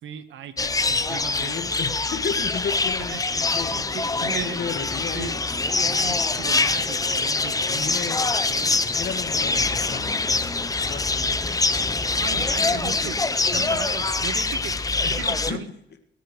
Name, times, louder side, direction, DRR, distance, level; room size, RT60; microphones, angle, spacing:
voice 1, 0.0-1.5 3.1-3.2 3.7-4.6 5.1-5.4 5.7-8.0 8.5-8.8 12.0-14.8 15.1-15.7, right 9 dB, 75° right, 10 dB, 1.4 m, -36 dB
sound 1, 0.6-15.5, left 3 dB, 15° left, 0.7 m, -24 dB
voice 2, 1.4-5.3 7.7-8.3 8.9-10.5 10.9-11.7 14.9-15.2 15.5-15.6, left 6 dB, 55° left, 7 dB, 1.8 m, -34 dB
26.5 x 10.5 x 3.2 m, 0.80 s
cardioid pair, 90°, 20 cm